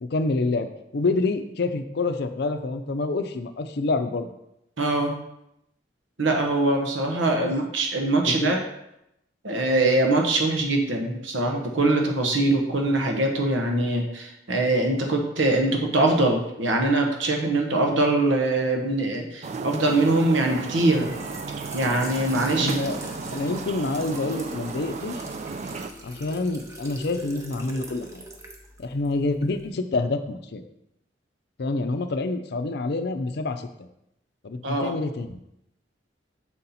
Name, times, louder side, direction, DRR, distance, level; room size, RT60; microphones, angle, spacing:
voice 1, 0.0-4.3 7.4-7.5 8.3-8.6 22.6-23.0 23.3-25.2 26.0-28.2 28.8-30.6 31.6-33.7 34.4-35.4, left 3 dB, 60° left, 9 dB, 0.5 m, -27 dB
voice 2, 4.8-5.1 6.2-8.6 9.4-21.1 21.7-22.8 34.6-34.9, right 2 dB, 90° right, 2 dB, 1.0 m, -23 dB
sound 1, 19.4-25.9, right 4 dB, 35° right, 0.3 m, -34 dB
Trickle dribble / Fill (with liquid), 20.9-29.7, right 1 dB, 15° right, 0.8 m, -41 dB
7.2 x 4.2 x 4.1 m, 0.82 s
head